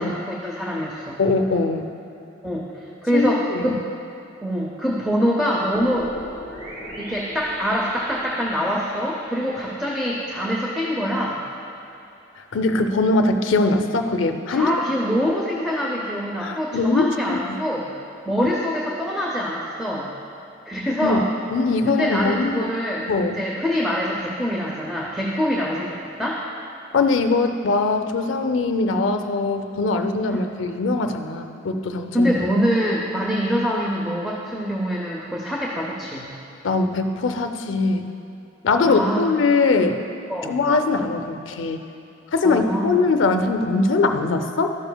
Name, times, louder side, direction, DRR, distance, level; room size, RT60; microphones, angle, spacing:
voice 1, 0.0-1.2 2.4-2.7 3.0-3.8 4.4-6.1 7.0-11.4 14.5-17.9 18.3-20.1 20.7-21.2 21.9-23.1 23.4-26.4 30.3-30.4 32.1-36.4 38.8-39.3 40.3-40.6 42.4-43.0, equal, ahead, -4 dB, 0.6 m, -24 dB
voice 2, 1.2-1.9 3.1-3.8 12.5-14.8 16.4-17.6 18.4-18.6 21.0-21.2 21.5-22.7 23.1-23.4 26.9-32.3 36.6-38.1 38.6-40.0 40.5-41.8 42.3-44.8, left 3 dB, 80° left, 7 dB, 0.5 m, -21 dB
sound 1, 5.7-10.9, right 1 dB, 85° right, 1.7 m, -39 dB
12.0 x 6.9 x 2.2 m, 2.8 s
head